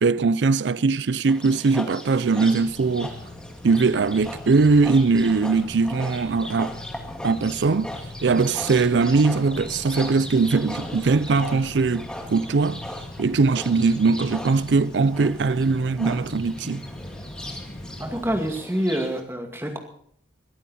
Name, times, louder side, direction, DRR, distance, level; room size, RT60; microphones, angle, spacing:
voice 1, 0.0-3.1 3.6-6.7 7.2-7.9 8.2-12.8 13.2-16.8, right 4 dB, 85° right, 0.5 m, -21 dB
Livestock farm animals working animals, 1.3-19.2, left 1 dB, 5° left, 2.0 m, -39 dB
sound 1, 2.6-18.5, left 1 dB, 35° left, 1.2 m, -40 dB
voice 2, 18.0-19.8, equal, 15° right, 2.2 m, -26 dB
22.0 x 12.5 x 4.2 m
head